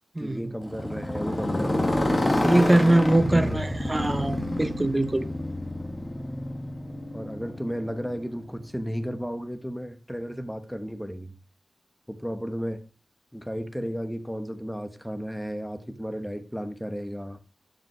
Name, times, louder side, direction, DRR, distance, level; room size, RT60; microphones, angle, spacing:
voice 1, 0.2-3.6 7.1-11.3 12.1-12.8 13.3-17.4, equal, ahead, 1.0 m, -33 dB
Motorcycle, 0.6-8.7, left 1 dB, 25° left, 1.8 m, -28 dB
voice 2, 2.4-5.3, right 1 dB, 25° right, 0.7 m, -22 dB
12.0 x 5.1 x 3.2 m
wide cardioid pair, 70°, 0 cm